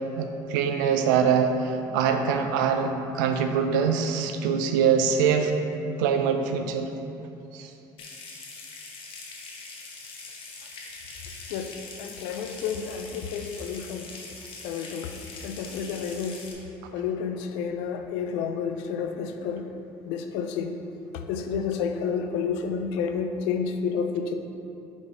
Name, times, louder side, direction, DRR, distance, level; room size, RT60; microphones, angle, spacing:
voice 1, 0.2-5.5 6.0-6.9 7.5-7.7, right 7 dB, 85° right, 6 dB, 0.5 m, -24 dB
Water tap faucet / Sink (filling or washing) / Trickle dribble, 8.0-16.5, left 4 dB, 60° left, 1.1 m, -43 dB
voice 2, 12.0-14.1 14.6-15.1 15.4-16.4 16.9-19.7 20.1-20.8 21.3-24.3, left 6 dB, 80° left, 6 dB, 0.4 m, -30 dB
5.3 x 4.1 x 4.6 m, 2.7 s
supercardioid pair, 70°, 10 cm